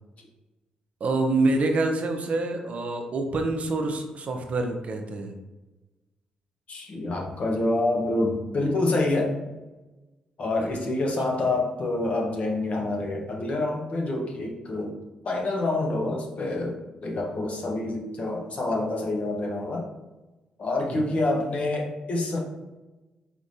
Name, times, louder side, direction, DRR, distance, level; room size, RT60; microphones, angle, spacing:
voice 1, 1.0-5.3 10.6-10.7 11.4-11.5 21.0-21.1, right 2 dB, 55° right, 4 dB, 0.6 m, -26 dB
voice 2, 6.7-9.4 10.4-14.9 15.2-19.9 20.6-22.4, left 2 dB, 55° left, 0 dB, 1.0 m, -27 dB
4.4 x 3.5 x 2.7 m, 1.1 s
supercardioid pair, 60°, 3 cm